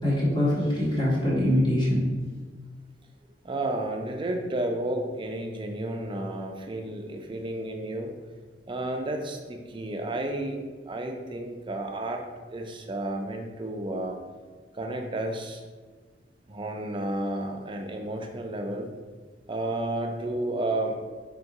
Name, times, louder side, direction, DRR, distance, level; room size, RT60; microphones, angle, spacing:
voice 1, 0.0-2.1, left 1 dB, 25° left, -6 dB, 1.4 m, -23 dB
voice 2, 3.4-8.1 8.7-10.6 10.9-12.2 12.5-14.2 14.7-15.6 16.5-18.9 19.5-21.0, right 1 dB, 25° right, 3 dB, 0.5 m, -31 dB
3.8 x 2.7 x 4.7 m, 1.4 s
head